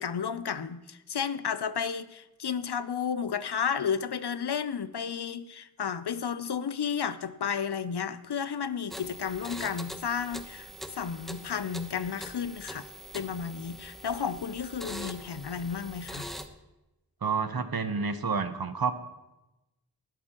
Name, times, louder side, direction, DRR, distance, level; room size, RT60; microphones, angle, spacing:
voice 1, 0.0-12.9 13.1-16.3, left 7 dB, 75° left, 13 dB, 0.7 m, -32 dB
sound 1, 8.9-16.5, equal, ahead, 1.1 m, -43 dB
voice 2, 17.2-18.9, right 5 dB, 60° right, 9 dB, 1.1 m, -29 dB
19.5 x 12.5 x 3.0 m, 0.98 s
wide cardioid pair, 60°, 40 cm